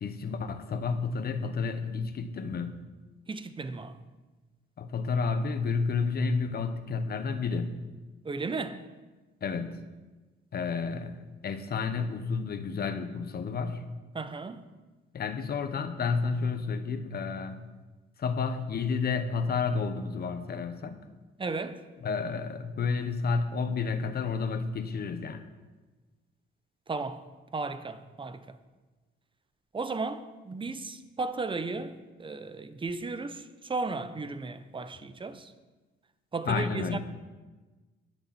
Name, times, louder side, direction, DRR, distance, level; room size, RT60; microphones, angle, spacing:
voice 1, 0.0-2.8 4.8-7.8 9.4-9.8 10.5-13.8 15.1-17.6 18.2-21.0 22.0-25.4 36.4-37.0, left 5 dB, 50° left, 1.2 m, -31 dB
voice 2, 3.3-4.0 8.2-8.9 14.1-14.6 21.4-21.8 26.9-27.3 27.5-28.6 29.7-35.5 36.3-37.0, right 3 dB, 25° right, 0.9 m, -35 dB
20.0 x 6.8 x 4.4 m
cardioid pair, 90°, 20 cm